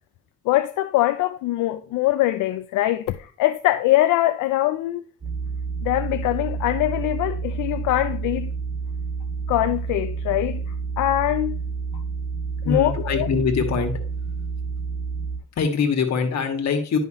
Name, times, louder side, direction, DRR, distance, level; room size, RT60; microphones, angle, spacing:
voice 1, 0.5-5.1 5.8-8.5 9.5-10.6 11.0-11.6 12.7-13.3, left 15 dB, 90° left, 0.5 m, -22 dB
sound 1, 5.2-15.4, right 5 dB, 25° right, 1.8 m, -29 dB
voice 2, 12.6-13.9 15.6-17.0, left 5 dB, 60° left, 1.9 m, -23 dB
10.5 x 5.7 x 3.0 m
cardioid pair, 90°, 30 cm